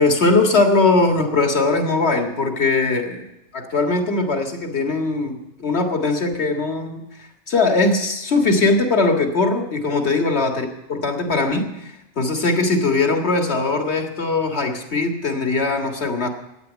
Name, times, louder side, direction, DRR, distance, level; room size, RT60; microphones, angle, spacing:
voice 1, 0.0-3.3 3.5-16.3, left 3 dB, 65° left, 3 dB, 2.0 m, -20 dB
12.5 x 9.7 x 8.2 m, 0.93 s
omnidirectional pair, 1.2 m